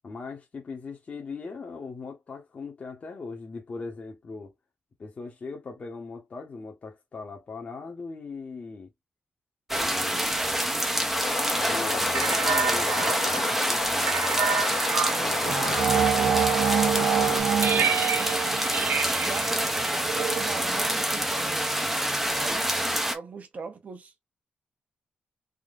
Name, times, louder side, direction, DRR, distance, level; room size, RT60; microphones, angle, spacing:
voice 1, 0.0-4.5 5.0-8.9 9.7-10.5 11.5-13.2 13.7-14.5 15.2-15.9 17.2-18.0, left 4 dB, 40° left, 1.1 m, -40 dB
sound 1, 9.7-23.1, right 1 dB, 5° right, 0.7 m, -27 dB
sound 2, 11.1-17.4, left 5 dB, 55° left, 0.9 m, -33 dB
sound 3, 12.1-21.1, right 7 dB, 85° right, 0.6 m, -27 dB
voice 2, 15.3-15.7 17.6-17.7 19.2-19.8 20.1-21.7 22.3-24.1, right 5 dB, 45° right, 1.0 m, -40 dB
3.7 x 2.9 x 2.4 m
wide cardioid pair, 140°, 4 cm